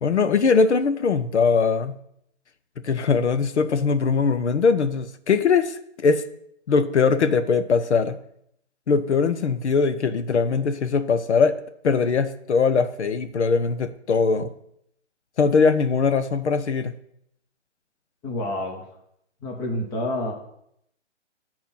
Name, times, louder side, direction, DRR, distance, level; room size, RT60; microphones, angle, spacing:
voice 1, 0.0-2.0 2.8-6.2 6.7-8.2 8.9-11.6 11.8-14.5 15.4-17.0, left 5 dB, 70° left, 0.8 m, -21 dB
voice 2, 18.2-18.9 19.4-20.3, left 1 dB, 10° left, 0.9 m, -28 dB
8.6 x 4.5 x 5.6 m
hypercardioid pair, 150°, 35 cm